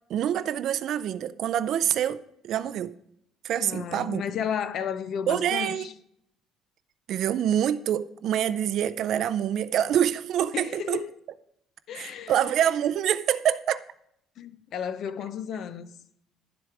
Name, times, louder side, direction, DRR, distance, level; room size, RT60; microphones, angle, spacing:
voice 1, 0.1-2.9 3.4-4.2 5.3-5.9 7.1-11.0 11.9-13.8, right 10 dB, 50° right, 0.5 m, -26 dB
voice 2, 3.6-5.9 10.5-11.1 11.9-12.3 14.4-15.9, left 8 dB, 50° left, 0.7 m, -33 dB
11.5 x 7.9 x 4.8 m
cardioid pair, 165°, 0 cm